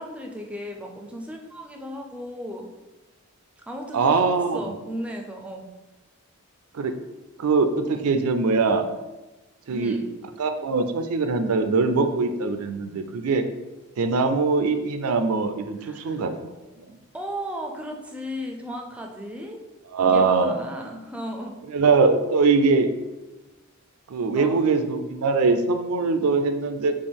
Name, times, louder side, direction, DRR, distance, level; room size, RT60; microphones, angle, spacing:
voice 1, 0.0-2.7 3.7-4.2 4.5-5.7 9.7-10.1 15.8-16.3 17.1-19.6 20.1-21.6 24.3-24.6, equal, 5° right, 1 dB, 0.4 m, -35 dB
voice 2, 3.9-4.7 6.7-6.9 7.4-8.8 9.7-10.0 10.4-13.4 14.0-16.3 16.9-17.0 19.9-20.5 21.7-22.9 24.1-26.9, right 4 dB, 80° right, 7 dB, 0.4 m, -22 dB
4.3 x 2.9 x 3.5 m, 1.1 s
head